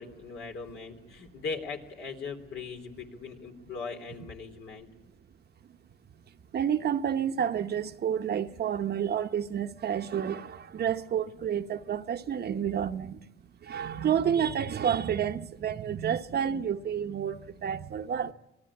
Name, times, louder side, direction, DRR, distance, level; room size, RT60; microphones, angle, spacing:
voice 1, 0.0-4.9, left 4 dB, 75° left, 3.5 m, -39 dB
voice 2, 6.5-13.2 13.6-18.3, right 8 dB, 55° right, 1.0 m, -30 dB
26.5 x 18.5 x 8.7 m
cardioid pair, 90°, 20 cm